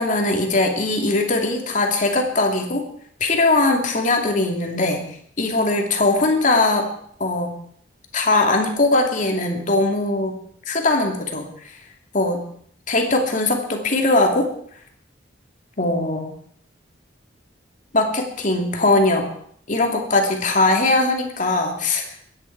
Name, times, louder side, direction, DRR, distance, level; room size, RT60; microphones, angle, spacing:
voice 1, 0.0-2.8 3.2-5.0 5.4-6.9 7.2-7.5 8.1-10.3 10.7-11.5 12.1-12.4 12.9-14.5 15.8-16.3 17.9-19.3 19.7-22.1, left 2 dB, 45° left, 2 dB, 2.6 m, -20 dB
24.0 x 10.0 x 4.7 m, 0.64 s
head